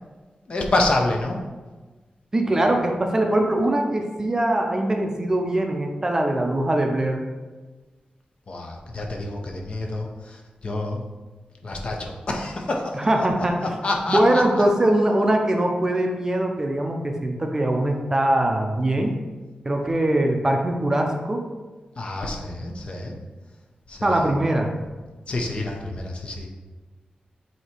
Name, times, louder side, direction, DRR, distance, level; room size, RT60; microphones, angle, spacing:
voice 1, 0.5-1.4 8.5-11.0 11.6-13.3 13.6-14.4 22.0-23.1 23.9-24.3 25.3-26.5, left 2 dB, 45° left, 1 dB, 0.8 m, -27 dB
voice 2, 2.3-7.2 12.9-13.6 14.1-19.1 19.7-21.4 24.0-24.7, right 1 dB, 20° right, 2 dB, 0.6 m, -22 dB
7.8 x 2.9 x 4.4 m, 1.3 s
wide cardioid pair, 170°, 3 cm